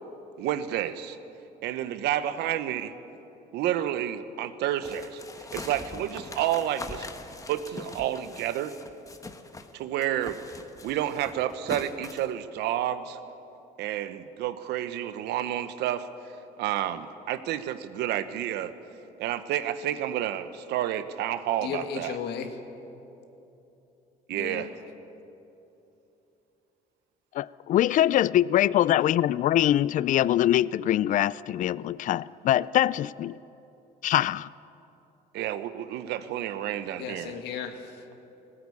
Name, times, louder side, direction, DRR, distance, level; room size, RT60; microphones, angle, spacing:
voice 1, 0.4-1.2 1.6-2.9 3.5-5.2 5.5-7.1 7.5-8.7 9.7-10.4 10.8-13.2 13.8-16.1 16.6-18.7 19.2-22.2 24.3-24.7 35.3-37.3, right 11 dB, 85° right, 1.0 m, -30 dB
sound 1, 4.8-9.7 10.0-12.3, left 3 dB, 20° left, 1.2 m, -42 dB
voice 2, 21.6-22.6 24.3-24.7 37.0-38.0, left 7 dB, 80° left, 1.8 m, -35 dB
voice 3, 27.4-33.4 34.0-34.5, left 12 dB, 50° left, 0.4 m, -23 dB
18.5 x 16.5 x 8.5 m
cardioid pair, 110°, 17 cm